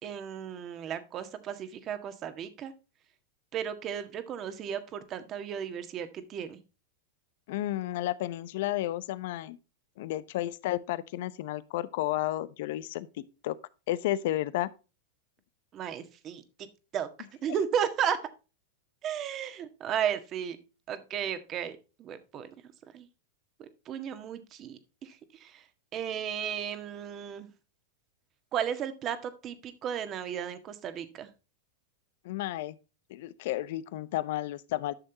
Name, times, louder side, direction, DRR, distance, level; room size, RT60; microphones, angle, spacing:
voice 1, 0.0-2.7 3.5-6.6 15.7-16.7 16.9-17.1 17.4-18.2 19.0-20.6 20.9-22.5 22.9-23.1 23.6-25.7 25.9-27.5 28.5-31.3, right 8 dB, 35° right, 1.6 m, -34 dB
voice 2, 7.5-9.6 10.0-13.6 13.9-14.7 32.2-32.8 33.1-34.9, left 15 dB, 65° left, 0.7 m, -32 dB
12.0 x 6.5 x 2.8 m
hypercardioid pair, 110°, 0 cm